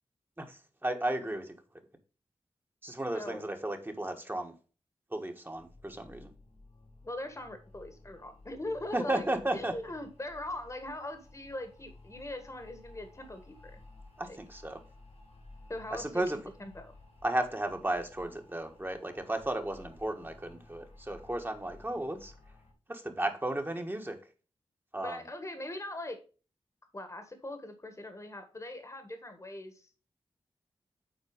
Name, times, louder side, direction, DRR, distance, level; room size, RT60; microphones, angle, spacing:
voice 1, 0.4-1.5 2.8-4.5 5.1-6.3 8.9-9.7 14.2-14.8 15.9-16.4 17.2-22.3 22.9-24.2 24.9-25.2, right 1 dB, 20° right, 5 dB, 1.4 m, -34 dB
sound 1, 5.6-22.7, left 2 dB, 80° left, 3.1 m, -55 dB
voice 2, 7.0-9.3 9.5-13.8 14.3-14.4 15.7-16.2 16.6-16.9 25.0-26.2 26.9-29.9, left 1 dB, 30° left, 7 dB, 1.4 m, -41 dB
7.4 x 4.3 x 5.0 m, 0.36 s
cardioid pair, 60°, 11 cm